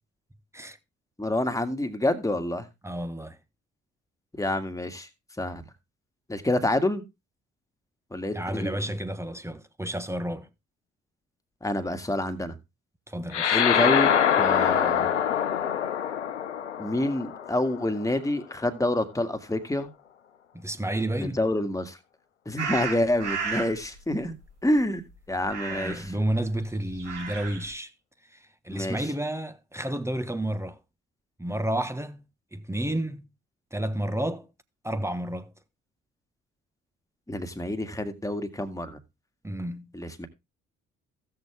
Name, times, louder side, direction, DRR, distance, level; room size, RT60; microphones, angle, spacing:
voice 1, 1.2-2.7 4.4-5.1 5.4-5.6 6.3-7.0 8.1-8.8 11.6-12.6 13.5-15.1 16.8-19.9 21.2-22.0 22.5-24.3 24.6-25.0 25.3-26.1 28.7-29.0 37.3-39.0 39.9-40.3, left 1 dB, 10° left, 2.0 m, -27 dB
voice 2, 2.8-3.4 8.3-10.5 13.1-13.6 20.5-21.4 25.7-27.9 28.3-30.8 31.4-32.2 32.5-33.3 33.7-34.5 34.8-35.5 39.4-39.9, right 1 dB, 10° right, 1.2 m, -31 dB
sound 1, 13.3-18.1, left 9 dB, 90° left, 0.6 m, -24 dB
sound 2, 22.6-23.7 25.4-26.1 26.9-27.7, right 5 dB, 90° right, 2.8 m, -33 dB
16.0 x 6.7 x 3.5 m
figure-of-eight pair, 40°, 34 cm